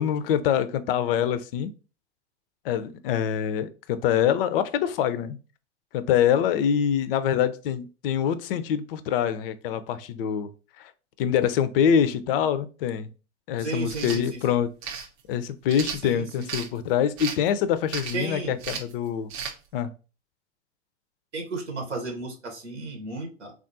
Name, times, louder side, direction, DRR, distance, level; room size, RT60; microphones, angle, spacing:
voice 1, 0.0-1.7 2.6-5.4 5.9-10.5 10.8-10.9 11.2-13.1 13.5-14.7 15.3-19.3 19.7-19.9, left 9 dB, 55° left, 0.4 m, -25 dB
voice 2, 13.6-14.6 16.0-16.5 18.1-18.6 21.3-23.5, right 3 dB, 85° right, 0.9 m, -33 dB
sound 1, 13.8-14.2 14.8-15.1 15.7-16.7 17.2-17.5 17.9-18.3 18.6-18.9 19.3-19.5, right 7 dB, 45° right, 0.6 m, -34 dB
3.5 x 2.4 x 2.6 m
figure-of-eight pair, 90°, 34 cm